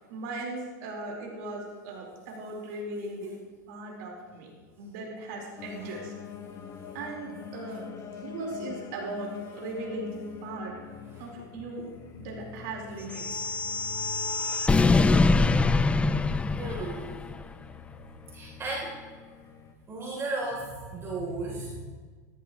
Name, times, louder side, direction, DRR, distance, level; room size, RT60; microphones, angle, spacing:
voice 1, 0.1-3.4 3.7-4.5 4.8-6.1 6.9-7.8 8.1-10.7 11.2-11.8 12.2-13.5, right 2 dB, 60° right, -1 dB, 4.4 m, -38 dB
sound 1, 5.6-19.7, left 8 dB, 30° left, 1.1 m, -45 dB
sound 2, 13.1-17.4, left 3 dB, 10° left, 0.4 m, -24 dB
voice 2, 16.6-17.4 18.3-19.0 19.9-21.8, right 2 dB, 25° right, -3 dB, 3.5 m, -35 dB
14.0 x 14.0 x 3.2 m, 1.5 s
hypercardioid pair, 105°, 10 cm